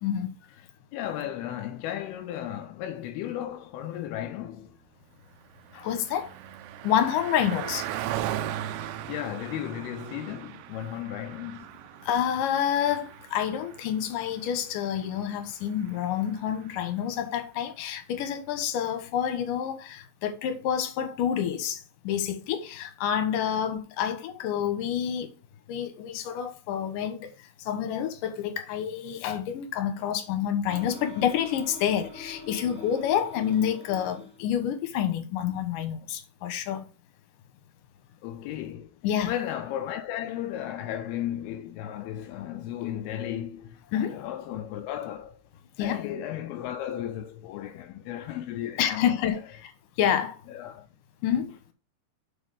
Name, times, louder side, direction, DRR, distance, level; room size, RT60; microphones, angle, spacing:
voice 1, 0.0-0.4 5.7-6.3 6.8-7.8 12.0-25.3 25.7-27.3 27.7-36.8 39.0-39.3 43.9-44.2 45.8-46.0 48.8-49.7 50.0-50.4 51.2-51.5, left 9 dB, 65° left, 2.4 m, -28 dB
voice 2, 0.9-4.8 9.1-11.7 38.2-45.4 45.8-49.1 50.5-50.9, left 11 dB, 85° left, 2.2 m, -35 dB
Car passing by, 5.1-16.8, right 12 dB, 85° right, 2.8 m, -39 dB
sound 1, 30.7-34.4, left 4 dB, 5° left, 2.4 m, -44 dB
7.3 x 4.9 x 5.0 m
omnidirectional pair, 5.0 m